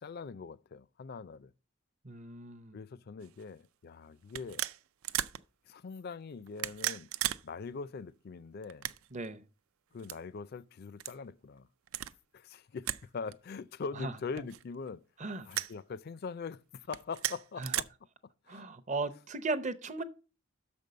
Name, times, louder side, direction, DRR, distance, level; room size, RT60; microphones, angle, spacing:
voice 1, 0.0-1.5 2.7-4.6 5.7-7.1 7.4-8.9 9.9-11.7 12.3-15.0 15.5-17.9 18.5-18.7, left 5 dB, 45° left, 0.4 m, -42 dB
voice 2, 2.0-2.8 9.1-9.4 14.0-14.1 15.2-15.5 17.6-17.7 18.5-20.0, right 3 dB, 35° right, 0.6 m, -36 dB
sound 1, 3.2-3.4 4.3-5.4 6.5-7.4 7.7-7.8 8.6-9.3 10.0-10.2 11.0-11.2 11.9-12.1 12.8-13.0 13.3-13.4 14.4-14.9 15.5-15.7 16.8-17.8, right 13 dB, 80° right, 0.4 m, -35 dB
6.7 x 5.3 x 6.6 m
head